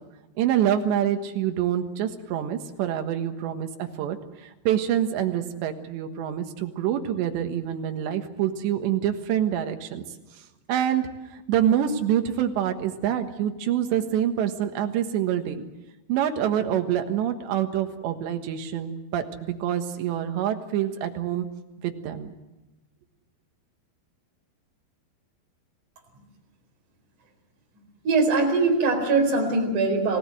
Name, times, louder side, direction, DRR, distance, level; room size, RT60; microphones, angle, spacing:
voice 1, 0.4-10.0 10.7-15.6 16.1-21.5 21.8-22.3, right 10 dB, 70° right, 5 dB, 3.5 m, -26 dB
voice 2, 28.0-30.2, right 3 dB, 45° right, 2 dB, 5.6 m, -22 dB
28.5 x 17.0 x 7.7 m, 1.0 s
omnidirectional pair, 5.5 m